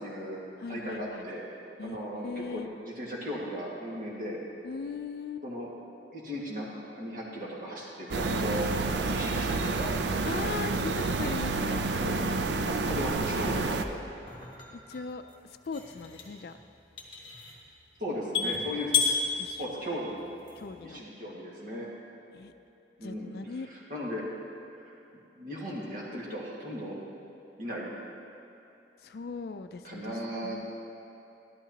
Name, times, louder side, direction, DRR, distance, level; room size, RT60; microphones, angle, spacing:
voice 1, 0.0-0.4 0.7-1.4 1.8-4.4 5.4-5.7 6.1-8.7 9.1-9.9 12.0-12.5 12.7-14.0 18.0-19.0 19.6-20.2 20.8-21.9 23.0-23.3 23.7-24.2 24.8-24.9 25.4-27.0 27.6-27.9 29.8-30.6, equal, 50° right, -4 dB, 1.8 m, -36 dB
voice 2, 0.6-1.2 1.8-2.7 4.6-5.4 10.2-11.8 12.5-13.7 14.9-15.2 15.7-16.5 18.4-18.6 19.4-19.6 20.6-21.0 22.3-22.5 23.0-23.7 29.0-30.2 30.4-30.7, left 4 dB, 60° left, 9 dB, 0.4 m, -39 dB
sound 1, 8.1-13.9, right 3 dB, 75° right, 0.5 m, -29 dB
sound 2, 14.0-20.9, left 5 dB, 30° left, 1.4 m, -34 dB
12.0 x 12.0 x 2.9 m, 2.8 s
head